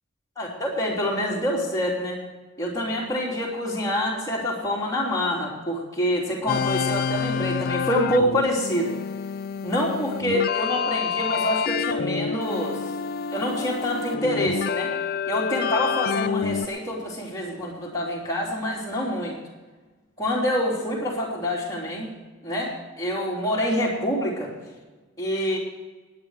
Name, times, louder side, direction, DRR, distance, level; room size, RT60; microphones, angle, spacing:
voice 1, 0.4-2.2 2.6-9.0 9.6-12.8 13.3-14.9 15.3-19.4 20.2-22.1 22.4-24.5 25.2-25.6, equal, 15° left, -4 dB, 3.2 m, -26 dB
sound 1, 6.5-16.7, left 6 dB, 45° left, 0.3 m, -28 dB
19.5 x 9.6 x 4.9 m, 1.3 s
head